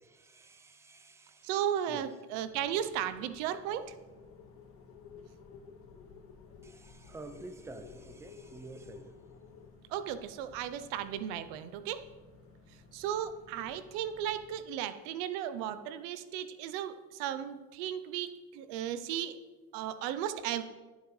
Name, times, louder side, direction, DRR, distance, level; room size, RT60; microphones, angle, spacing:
voice 1, 0.0-1.5 1.9-2.1 6.6-9.1, right 2 dB, 10° right, 8 dB, 0.6 m, -49 dB
voice 2, 1.4-3.9 9.9-12.0 12.9-19.4 19.7-20.6, right 10 dB, 85° right, 12 dB, 0.7 m, -35 dB
sound 1, 2.4-14.6, left 2 dB, 40° left, 2.1 m, -59 dB
sound 2, 4.1-9.7, left 7 dB, 80° left, 1.0 m, -54 dB
13.5 x 7.4 x 3.2 m, 1.3 s
cardioid pair, 120°, 32 cm